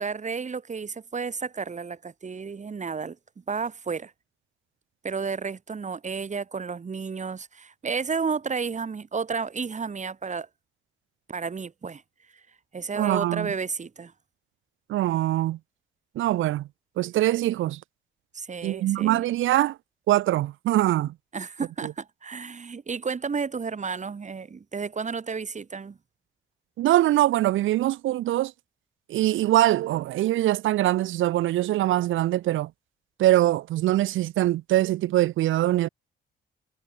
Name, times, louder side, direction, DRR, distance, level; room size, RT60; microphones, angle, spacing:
voice 1, 0.0-3.2 3.5-4.1 5.0-10.5 11.3-12.0 12.7-14.1 18.3-19.2 21.3-26.0, right 5 dB, 35° right, 6.5 m, -32 dB
voice 2, 12.9-13.5 14.9-15.6 16.1-16.7 17.0-17.8 18.6-19.8 20.1-21.1 21.8-21.9 26.8-28.5 29.1-32.7 33.2-35.9, right 15 dB, 80° right, 1.1 m, -23 dB
cardioid pair, 90°, 20 cm